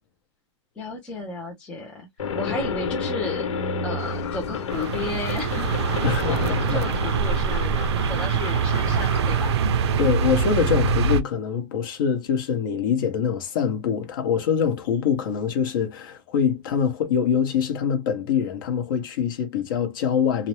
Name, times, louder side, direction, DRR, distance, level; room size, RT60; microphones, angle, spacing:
voice 1, 0.8-3.5 3.8-9.6, left 2 dB, 5° left, 0.4 m, -34 dB
sound 1, 2.2-8.3, left 3 dB, 90° left, 0.8 m, -30 dB
sound 2, 4.0-9.5, left 7 dB, 65° left, 0.5 m, -38 dB
sound 3, 4.7-11.2, right 5 dB, 60° right, 0.4 m, -24 dB
voice 2, 6.0-6.8 10.0-20.5, left 7 dB, 45° left, 0.8 m, -24 dB
2.5 x 2.0 x 3.0 m
supercardioid pair, 175°, 16 cm